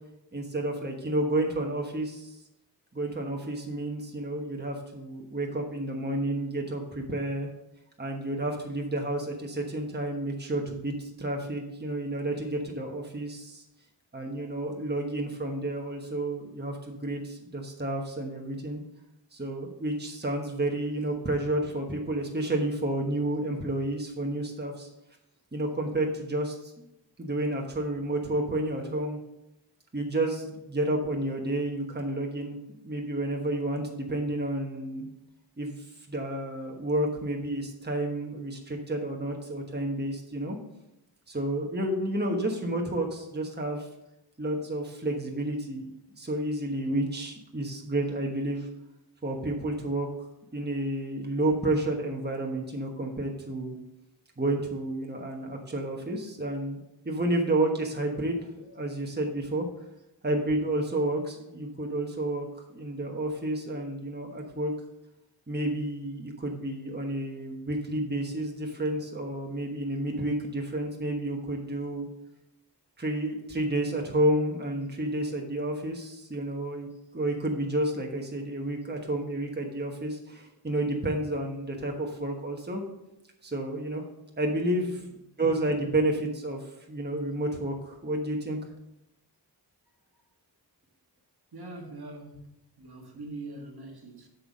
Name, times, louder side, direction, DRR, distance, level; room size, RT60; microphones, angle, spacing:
voice 1, 0.3-2.4 2.9-7.5 8.0-13.6 14.1-18.8 19.3-24.9 25.5-26.7 27.2-29.2 29.9-35.1 35.6-40.6 41.3-43.9 44.4-45.9 46.1-48.7 49.2-50.3 50.5-53.7 54.4-56.8 57.0-59.7 60.2-62.5 62.7-64.7 65.5-72.1 73.0-76.9 77.1-82.8 83.4-84.0 84.4-85.0 85.4-88.6, right 1 dB, 25° right, 1.2 m, -30 dB
voice 2, 84.7-85.0 90.1-90.2 91.5-94.3, right 2 dB, 60° right, 1.5 m, -43 dB
8.0 x 5.6 x 5.2 m
wide cardioid pair, 65°, 43 cm